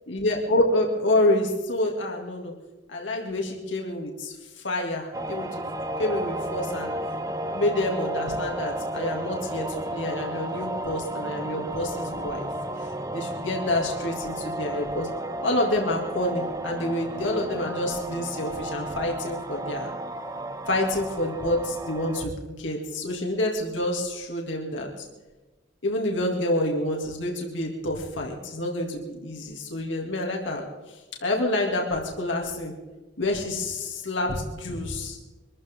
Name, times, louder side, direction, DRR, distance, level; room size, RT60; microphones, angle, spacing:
voice 1, 0.1-2.5 2.9-4.3 4.6-5.6 6.0-6.9 7.5-12.5 13.1-19.9 20.7-25.1 25.8-30.6 30.9-32.7 33.2-35.2, left 1 dB, 90° left, 0 dB, 2.9 m, -28 dB
sound 1, 5.1-22.3, right 1 dB, 20° right, 0.8 m, -33 dB
25.0 x 14.0 x 3.8 m, 1.1 s
head